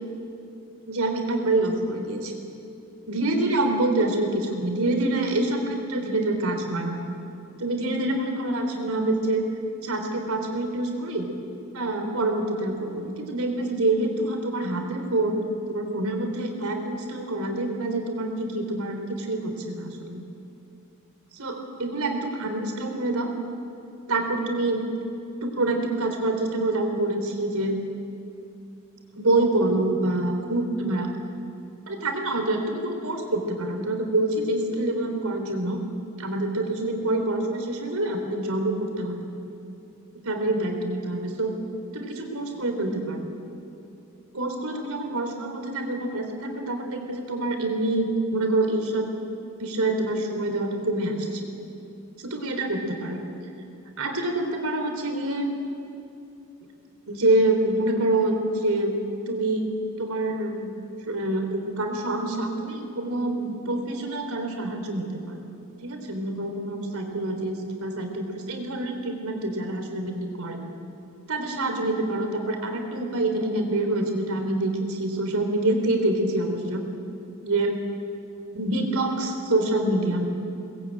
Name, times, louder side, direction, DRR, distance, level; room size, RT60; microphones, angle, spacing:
voice 1, 0.9-2.4 3.1-7.0 7.6-9.4 9.8-11.3 11.7-15.4 15.7-20.2 21.3-23.3 24.1-24.8 25.4-27.8 29.1-31.1 31.9-35.8 36.2-39.3 40.1-41.6 41.9-43.3 44.3-49.1 49.6-51.5 52.2-53.2 54.0-55.5 57.1-59.7 60.0-60.7 61.0-65.5 65.8-70.6 71.3-76.9 77.4-77.8 78.5-80.3, right 2 dB, 80° right, 4 dB, 3.8 m, -26 dB
23.0 x 20.5 x 9.1 m, 2.8 s
head